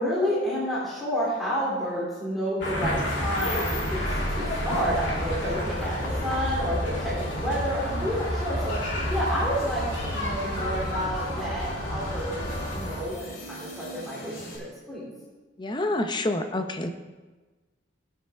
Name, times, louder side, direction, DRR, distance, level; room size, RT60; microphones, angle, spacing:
voice 1, 0.0-15.0, equal, ahead, -8 dB, 2.8 m, -30 dB
sound 1, 2.6-13.0, equal, 70° left, 2.5 m, -30 dB
sound 2, 3.0-14.6, equal, 50° left, 2.8 m, -40 dB
voice 2, 15.6-16.9, left 1 dB, 25° left, 6 dB, 0.6 m, -27 dB
16.0 x 6.7 x 3.5 m, 1.3 s
head